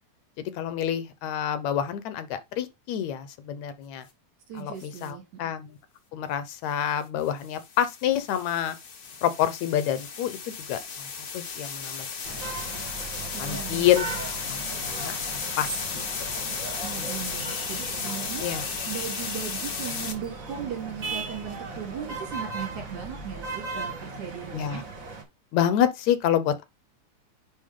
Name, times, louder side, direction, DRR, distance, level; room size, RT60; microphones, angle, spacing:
voice 1, 0.5-4.1 4.6-5.8 6.1-8.8 9.2-11.1 11.3-12.5 13.4-14.1 14.5-16.0 17.0-17.1 18.4-18.7 24.5-24.8 25.5-26.6, left 10 dB, 75° left, 2.1 m, -28 dB
voice 2, 4.5-5.5 13.3-14.2 16.8-18.5 18.9-24.9, right 8 dB, 75° right, 4.5 m, -37 dB
sound 1, 4.8-5.1 7.2-20.1, left 5 dB, 50° left, 1.1 m, -34 dB
sound 2, 12.2-25.2, right 3 dB, 35° right, 1.8 m, -37 dB
9.9 x 3.6 x 3.7 m
omnidirectional pair, 3.3 m